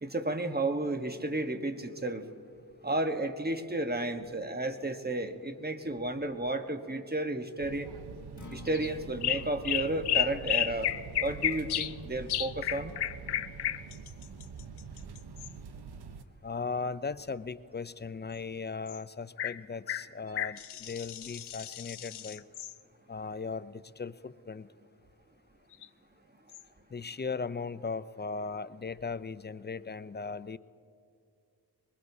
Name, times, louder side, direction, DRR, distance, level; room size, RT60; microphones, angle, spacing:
voice 1, 0.0-2.3 2.8-7.9 8.5-10.9 11.2-12.9, right 2 dB, 25° right, 7 dB, 1.1 m, -32 dB
sound 1, 7.6-16.2, right 5 dB, 80° right, 0.7 m, -45 dB
Acoustic guitar, 8.3-16.4, left 2 dB, 50° left, 1.5 m, -55 dB
sound 2, 8.7-8.9 9.2-12.0 12.3-15.5 18.9-19.0 19.4-19.6 19.9-22.8 25.7-25.9 26.5-26.6, left 11 dB, 85° left, 0.5 m, -33 dB
voice 2, 16.4-22.4 23.1-24.7 26.9-30.6, left 4 dB, 25° left, 15 dB, 0.4 m, -38 dB
23.0 x 20.5 x 2.8 m, 2.4 s
cardioid pair, 45°, 39 cm